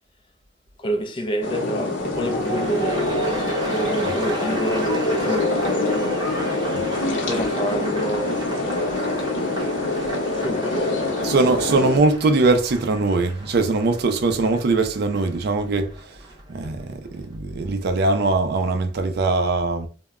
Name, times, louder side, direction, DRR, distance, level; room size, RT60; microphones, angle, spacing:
voice 1, 0.8-6.3 7.2-9.4 10.3-11.2, equal, 25° left, 0.3 m, -29 dB
sound 1, 1.4-12.0, left 2 dB, 75° left, 0.8 m, -25 dB
sound 2, 2.0-18.1 18.4-18.8, right 2 dB, 20° right, 0.7 m, -36 dB
voice 2, 11.2-15.9 16.5-19.9, right 3 dB, 55° right, 0.4 m, -21 dB
2.1 x 2.0 x 3.5 m
head